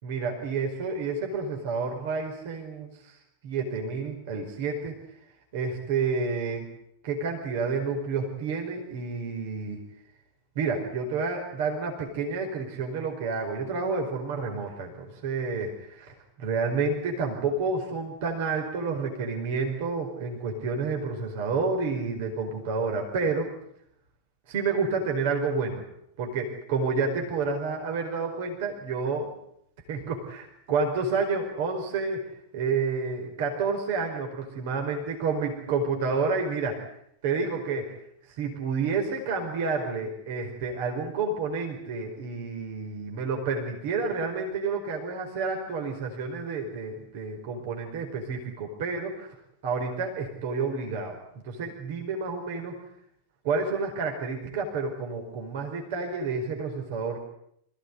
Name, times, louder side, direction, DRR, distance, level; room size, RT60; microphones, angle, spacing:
voice 1, 0.0-3.2 3.4-5.0 5.5-6.7 7.0-9.8 10.5-23.5 24.5-25.8 26.2-29.3 29.9-32.2 32.5-36.9 37.2-37.9 38.3-49.3 49.6-51.2 51.4-52.7 53.4-57.2, right 4 dB, 50° right, 3 dB, 4.8 m, -29 dB
27.0 x 16.5 x 9.7 m, 0.74 s
figure-of-eight pair, 90°, 0 cm